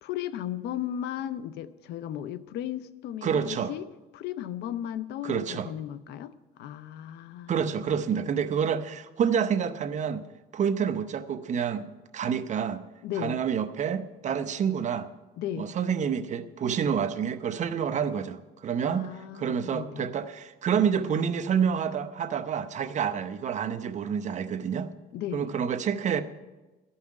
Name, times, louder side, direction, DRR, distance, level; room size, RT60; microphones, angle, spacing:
voice 1, 0.0-3.8 4.1-8.3 13.0-13.4 15.4-15.8 18.8-20.1 25.1-25.5, left 11 dB, 80° left, 0.6 m, -36 dB
voice 2, 3.2-3.7 5.2-5.7 7.5-10.2 10.5-12.8 13.2-15.1 15.6-19.1 19.3-24.9 25.3-26.2, right 7 dB, 45° right, 0.8 m, -28 dB
13.0 x 5.7 x 9.4 m
cardioid pair, 110°, 17 cm